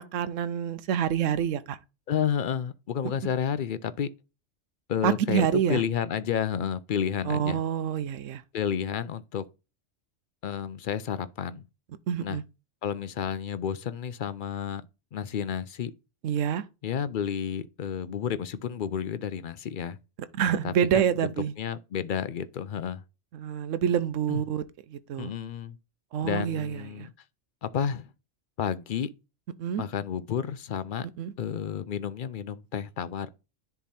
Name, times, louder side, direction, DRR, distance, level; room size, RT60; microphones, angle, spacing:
voice 1, 0.0-1.8 5.0-5.8 7.2-8.4 12.1-12.4 16.2-16.6 20.3-21.5 23.3-24.6 24.9-25.3 26.1-27.1 29.6-29.8 31.2-31.3, right 8 dB, 85° right, 1.0 m, -27 dB
voice 2, 2.1-4.1 4.9-7.6 8.5-9.4 10.4-11.6 12.2-12.4 12.8-14.8 15.1-15.9 16.8-20.0 20.6-20.7 21.6-23.0 24.3-24.4 25.2-25.8 26.2-27.1 27.6-28.1 28.6-29.1 29.8-31.1 31.4-33.3, left 8 dB, 60° left, 0.5 m, -31 dB
10.5 x 3.6 x 4.2 m
omnidirectional pair, 1.3 m